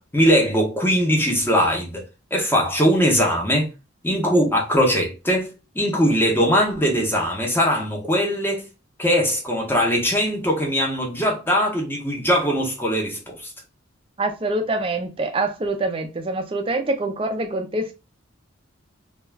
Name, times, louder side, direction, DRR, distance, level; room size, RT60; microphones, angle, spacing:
voice 1, 0.0-2.0 2.3-3.7 4.0-8.7 9.0-13.5, equal, 10° left, 0.7 m, -21 dB
voice 2, 14.2-17.9, right 2 dB, 25° right, 0.4 m, -25 dB
2.3 x 2.2 x 3.2 m
head